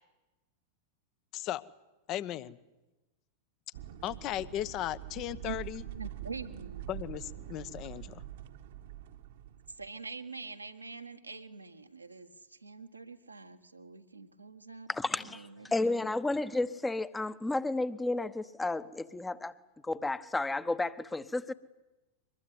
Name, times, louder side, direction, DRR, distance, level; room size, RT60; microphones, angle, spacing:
voice 1, 2.1-2.6 4.0-5.8 6.9-8.2, left 13 dB, 35° left, 1.0 m, -36 dB
sound 1, 3.7-9.9, right 12 dB, 55° right, 1.4 m, -45 dB
voice 2, 5.8-6.9 9.8-14.9 15.2-15.7 16.0-16.1, right 4 dB, 80° right, 1.6 m, -45 dB
voice 3, 14.9-19.5 19.8-21.5, left 2 dB, 10° left, 1.1 m, -32 dB
24.0 x 21.0 x 9.6 m
figure-of-eight pair, 90°, 0 cm